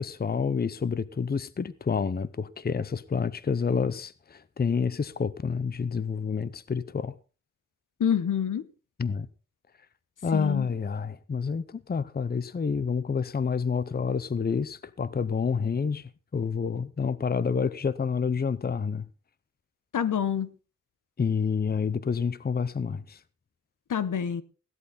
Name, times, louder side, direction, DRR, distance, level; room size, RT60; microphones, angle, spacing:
voice 1, 0.0-7.1 9.0-9.3 10.2-19.1 21.2-23.2, left 5 dB, 30° left, 0.7 m, -28 dB
voice 2, 8.0-8.7 10.3-10.7 19.9-20.5 23.9-24.4, left 8 dB, 80° left, 1.1 m, -27 dB
16.5 x 12.0 x 4.1 m
wide cardioid pair, 135°, 31 cm